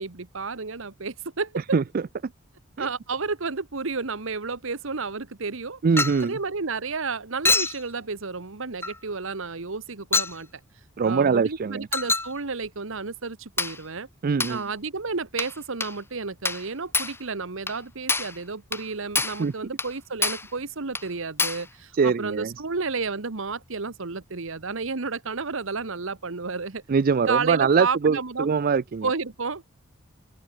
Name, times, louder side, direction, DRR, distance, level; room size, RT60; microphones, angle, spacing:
voice 1, 0.0-1.8 2.8-5.8 6.2-10.5 11.0-14.1 14.5-26.8 27.2-28.5 29.0-29.6, right 4 dB, 70° right, 1.3 m, -31 dB
voice 2, 5.8-6.3 11.0-11.9 14.2-14.6 19.4-19.5 22.0-22.5 26.9-29.1, right 5 dB, 45° right, 0.4 m, -22 dB
Chink clink, 6.0-6.3 7.4-7.8 8.8-9.0 10.1-10.4 11.9-12.3 13.6-13.8 14.4-14.6 15.4-15.6 15.8-16.0 16.4-16.7 16.9-17.2 17.7-17.8 18.1-18.4 18.7-18.9 19.1-19.4 19.8-19.9 20.2-20.5 20.9-21.1 21.4-21.7, left 3 dB, 10° left, 1.0 m, -26 dB
open air
head